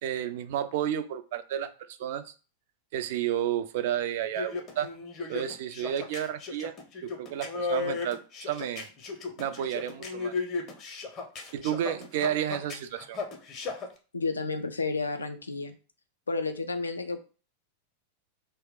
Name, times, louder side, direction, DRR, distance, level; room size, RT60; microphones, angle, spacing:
voice 1, 0.0-2.3 2.9-4.9 5.3-6.7 7.0-8.9 9.4-10.3 11.5-13.2, right 10 dB, 50° right, 10 dB, 0.3 m, -31 dB
sound 1, 4.2-13.9, left 4 dB, 30° left, 0.6 m, -35 dB
voice 2, 14.1-15.8 16.3-17.2, left 3 dB, 75° left, 7 dB, 0.3 m, -31 dB
2.2 x 2.0 x 3.6 m, 0.35 s
figure-of-eight pair, 90°, 0 cm